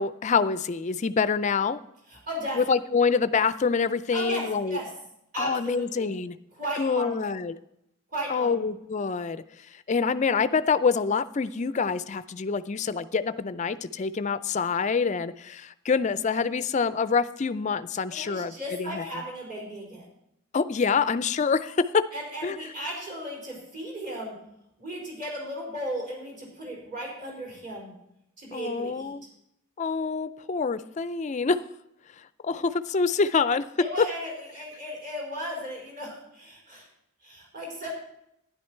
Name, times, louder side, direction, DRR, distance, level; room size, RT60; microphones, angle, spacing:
voice 1, 0.0-1.8 2.6-4.8 5.4-6.4 6.8-7.6 8.3-9.4 9.9-18.5 18.8-19.0 20.5-22.1 22.4-22.6 28.5-29.2 29.8-31.6 32.4-33.7 34.0-34.1, left 5 dB, 35° left, 14 dB, 0.4 m, -26 dB
voice 2, 2.1-2.6 4.1-4.9 5.3-6.1 6.5-7.3 8.1-8.7 18.1-20.1 22.1-24.4 24.8-27.9 28.4-29.1 33.8-36.9 37.2-37.9, right 1 dB, 40° right, -1 dB, 4.4 m, -35 dB
11.5 x 10.5 x 4.4 m, 0.81 s
head